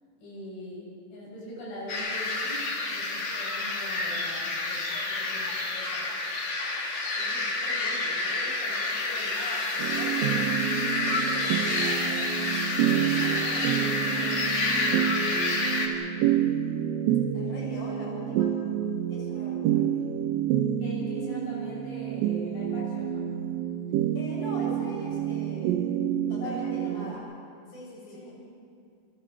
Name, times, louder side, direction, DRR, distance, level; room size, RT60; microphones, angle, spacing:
voice 1, 0.2-6.1 19.3-19.6 20.8-23.3 26.4-26.9 28.1-28.4, left 1 dB, 70° left, -5 dB, 9.6 m, -42 dB
sound 1, 1.9-15.9, left 2 dB, 45° left, 3.1 m, -29 dB
voice 2, 7.1-10.3 10.9-12.3 12.9-15.9 17.3-18.5 19.1-20.0 24.1-25.8 26.3-27.2 27.7-28.2, left 1 dB, 20° left, -5 dB, 7.3 m, -43 dB
sound 2, 9.8-27.1, right 10 dB, 85° right, 3.6 m, -28 dB
29.5 x 28.5 x 4.5 m, 2.3 s
omnidirectional pair, 5.7 m